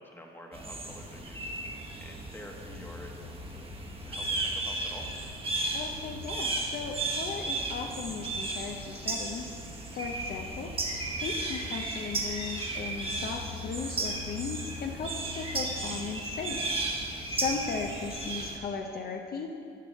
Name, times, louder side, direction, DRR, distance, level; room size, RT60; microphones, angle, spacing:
voice 1, 0.0-3.7 4.0-5.2 17.6-17.7, left 1 dB, 10° left, 1 dB, 1.2 m, -48 dB
sound 1, 0.5-18.6, right 2 dB, 30° right, 1.2 m, -34 dB
voice 2, 5.7-9.5 9.9-10.7 11.1-19.5, left 5 dB, 50° left, 2 dB, 0.7 m, -37 dB
6.9 x 6.7 x 6.4 m, 2.4 s
cardioid pair, 90°, 20 cm